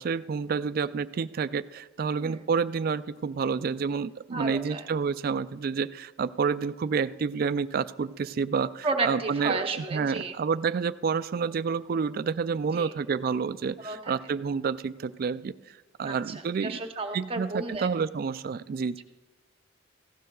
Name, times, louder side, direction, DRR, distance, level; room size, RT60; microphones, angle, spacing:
voice 1, 0.0-15.5 16.0-16.8 17.1-19.0, right 5 dB, 45° right, 15 dB, 0.3 m, -29 dB
voice 2, 4.3-4.8 8.8-10.4 12.7-12.9 13.8-14.1 16.0-17.9 19.0-19.1, right 3 dB, 30° right, 4 dB, 0.8 m, -33 dB
18.5 x 15.5 x 2.3 m, 1.2 s
head